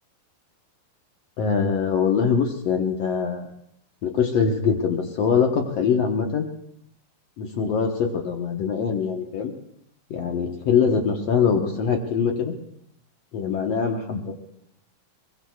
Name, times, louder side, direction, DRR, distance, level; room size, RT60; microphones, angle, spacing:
voice 1, 1.4-3.5 4.0-6.5 7.4-9.5 10.1-12.5 13.3-14.3, left 6 dB, 65° left, 3 dB, 1.6 m, -23 dB
23.0 x 22.0 x 2.4 m, 0.73 s
omnidirectional pair, 4.4 m